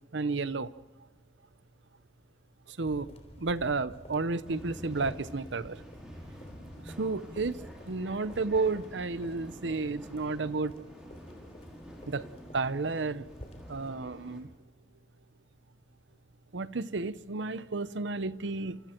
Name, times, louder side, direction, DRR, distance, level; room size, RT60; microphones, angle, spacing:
voice 1, 0.1-0.7 2.7-3.1 3.4-5.8 6.8-7.6 7.9-10.7 12.1-12.3 12.5-13.3 13.7-14.5 16.5-18.8, right 3 dB, 75° right, 0.8 m, -32 dB
sound 1, 2.8-13.9, equal, 35° left, 3.6 m, -51 dB
sound 2, 4.4-14.4, equal, 5° right, 5.3 m, -48 dB
30.0 x 27.5 x 4.5 m
head